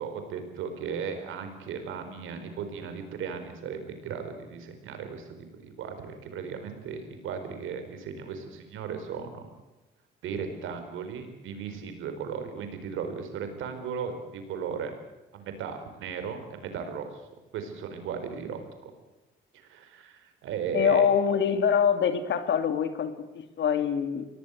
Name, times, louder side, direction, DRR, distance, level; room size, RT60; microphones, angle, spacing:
voice 1, 0.0-9.5 10.2-14.9 15.3-17.1 17.5-18.9 19.5-21.1, right 6 dB, 85° right, 7 dB, 4.4 m, -36 dB
voice 2, 20.7-24.2, left 7 dB, 70° left, 9 dB, 2.4 m, -24 dB
24.0 x 18.0 x 8.2 m, 1.1 s
cardioid pair, 90°, 20 cm